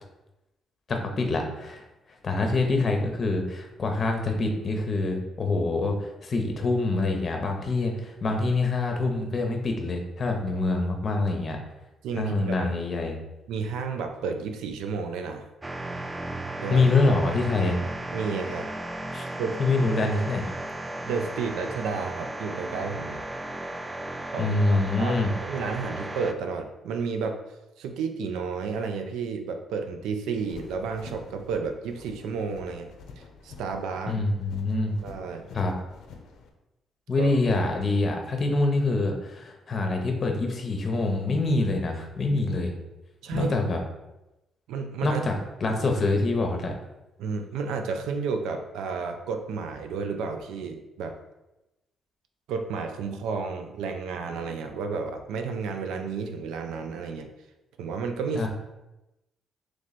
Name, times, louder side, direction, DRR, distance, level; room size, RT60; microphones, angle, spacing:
voice 1, 0.9-1.8 2.2-11.6 12.2-13.2 16.7-17.8 19.1-19.3 19.6-20.6 24.4-25.3 34.1-35.0 35.5-35.7 37.1-42.7 43.3-43.8 45.0-45.3 45.6-46.7 58.3-58.5, left 3 dB, 45° left, 3 dB, 0.8 m, -25 dB
voice 2, 12.0-12.7 13.5-15.4 16.6-16.8 18.1-18.7 19.4-19.6 21.1-23.2 24.3-27.4 27.8-32.9 33.2-34.1 35.0-35.4 37.2-37.3 43.2-43.6 44.7-45.2 47.2-51.2 52.5-57.3 57.8-58.5, right 5 dB, 90° right, 5 dB, 0.4 m, -32 dB
sound 1, 15.6-26.3, right 1 dB, 20° right, 0.3 m, -35 dB
sound 2, 30.3-36.5, left 4 dB, 80° left, 0.5 m, -47 dB
3.1 x 3.0 x 4.0 m, 0.97 s
cardioid pair, 90°, 0 cm